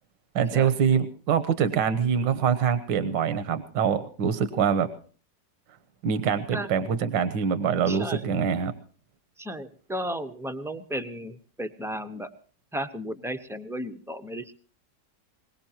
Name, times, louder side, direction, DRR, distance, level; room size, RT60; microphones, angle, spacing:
voice 1, 0.3-4.9 6.0-8.7, right 7 dB, 85° right, 12 dB, 1.7 m, -24 dB
voice 2, 7.9-8.2 9.4-12.3 12.7-14.5, equal, 5° right, 8 dB, 0.3 m, -34 dB
22.5 x 19.5 x 2.9 m, 0.42 s
omnidirectional pair, 2.0 m